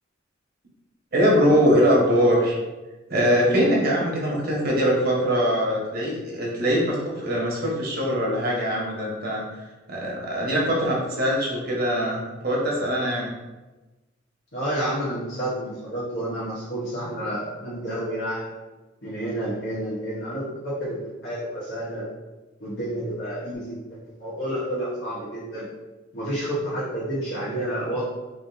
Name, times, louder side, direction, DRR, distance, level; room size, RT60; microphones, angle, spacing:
voice 1, 1.1-2.6 3.1-9.4 9.9-13.3, equal, 50° right, -3 dB, 1.0 m, -22 dB
voice 2, 14.5-18.5 19.0-22.0 22.6-25.7 26.1-28.1, right 1 dB, 60° left, -10 dB, 1.1 m, -30 dB
3.3 x 2.7 x 3.9 m, 1.1 s
head